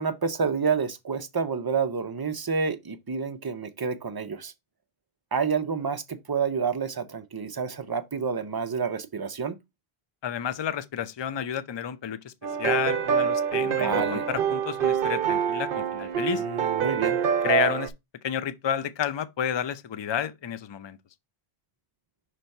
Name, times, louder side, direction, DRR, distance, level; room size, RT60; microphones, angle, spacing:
voice 1, 0.0-4.5 5.3-9.6 13.8-14.3 16.3-17.2, right 5 dB, 30° right, 0.5 m, -29 dB
voice 2, 10.2-12.3 12.6-16.4 17.4-17.9 18.2-21.0, left 9 dB, 45° left, 0.3 m, -30 dB
sound 1, 12.4-17.9, right 7 dB, 65° right, 0.8 m, -26 dB
5.8 x 3.3 x 5.2 m
omnidirectional pair, 1.0 m